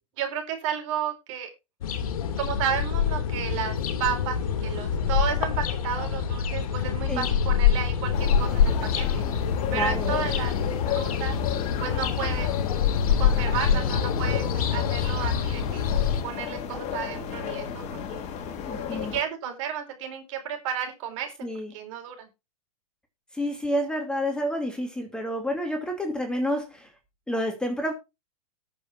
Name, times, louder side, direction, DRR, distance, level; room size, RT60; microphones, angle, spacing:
voice 1, 0.2-1.5 2.4-9.2 9.7-10.6 10.9-11.4 11.8-12.5 13.2-15.9 16.2-17.8 18.1-18.2 18.9-21.3 21.7-22.3, right 8 dB, 55° right, 4.6 m, -32 dB
sound 1, 1.8-16.2, left 7 dB, 65° left, 2.3 m, -25 dB
sound 2, 8.1-19.2, left 8 dB, 35° left, 2.5 m, -34 dB
voice 2, 9.7-10.1 13.7-13.8 18.7-19.1 21.4-21.7 23.3-26.9 27.3-27.9, equal, 5° left, 2.6 m, -29 dB
19.5 x 6.9 x 2.6 m
hypercardioid pair, 115°, 20 cm